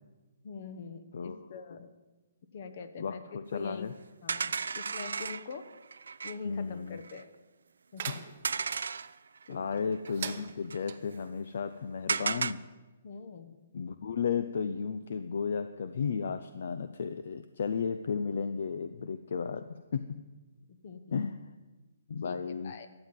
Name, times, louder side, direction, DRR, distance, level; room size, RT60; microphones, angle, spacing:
voice 1, 0.4-1.9 2.5-3.9 4.2-5.6 6.2-7.3 7.9-8.2 9.5-9.8 13.0-13.6 20.7-21.2 22.2-22.9, left 5 dB, 40° left, 10 dB, 1.2 m, -44 dB
voice 2, 3.0-3.9 6.4-7.0 8.1-8.2 9.5-12.6 13.7-20.2 21.1-21.4 22.1-22.7, left 6 dB, 60° left, 10 dB, 0.6 m, -34 dB
sound 1, 4.3-6.4 6.9-7.2 8.4-9.5 9.8-9.9 10.1-10.8 12.1-12.5, right 5 dB, 85° right, 0.4 m, -34 dB
sound 2, 8.0-8.8 10.1-11.0, right 8 dB, 40° right, 0.8 m, -41 dB
13.0 x 7.9 x 9.2 m, 1.2 s
hypercardioid pair, 170°, 0 cm